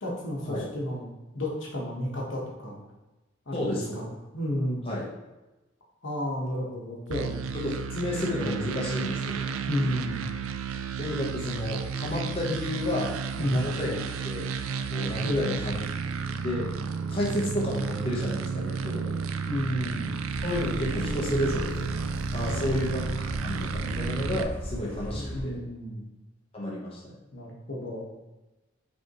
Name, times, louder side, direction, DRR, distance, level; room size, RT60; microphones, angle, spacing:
voice 1, 0.0-1.1 1.3-2.8 3.5-4.8 6.0-7.4 9.7-10.2 13.4-13.7 15.2-15.6 19.5-20.1 22.4-22.9 25.1-26.1 27.3-28.1, left 1 dB, 65° left, -2 dB, 1.1 m, -32 dB
voice 2, 3.5-4.0 4.8-5.1 7.5-9.4 11.0-14.5 14.9-15.8 16.4-16.7 17.1-19.2 20.4-22.0 22.3-25.6 26.5-27.0, left 1 dB, 30° left, -5 dB, 0.8 m, -31 dB
sound 1, 7.1-24.4, right 5 dB, 85° right, 0.3 m, -32 dB
sound 2, 20.3-25.4, equal, 70° right, 1.0 m, -36 dB
5.3 x 3.4 x 2.9 m, 1.0 s
head